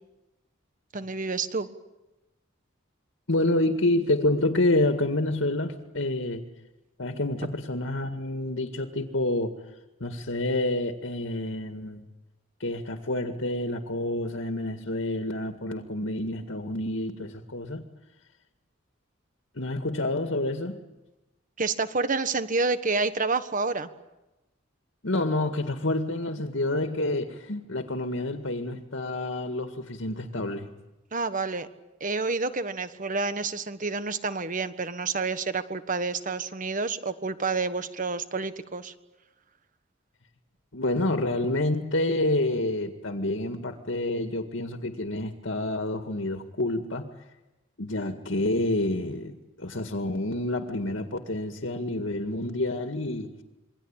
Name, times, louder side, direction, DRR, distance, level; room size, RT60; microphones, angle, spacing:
voice 1, 0.9-1.7 21.6-23.9 31.1-31.7 32.0-38.9, right 4 dB, 40° right, 11 dB, 1.5 m, -29 dB
voice 2, 3.3-6.5 7.0-9.5 10.0-12.1 12.6-17.8 19.6-20.8 25.0-30.7 40.7-47.1 47.8-53.4, left 1 dB, 75° left, 6 dB, 1.9 m, -28 dB
27.5 x 23.0 x 8.9 m, 1.0 s
head